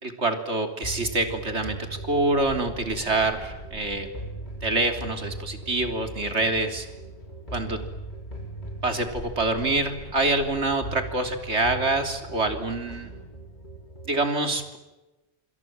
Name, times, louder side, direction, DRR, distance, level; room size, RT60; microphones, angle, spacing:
voice 1, 0.0-1.8 2.1-4.1 4.6-6.9 7.5-7.8 8.8-13.1 14.1-14.8, right 2 dB, 85° right, 6 dB, 3.6 m, -26 dB
sound 1, 0.8-14.1, right 1 dB, 45° left, 7.6 m, -39 dB
27.0 x 27.0 x 7.6 m, 1.1 s
omnidirectional pair, 1.1 m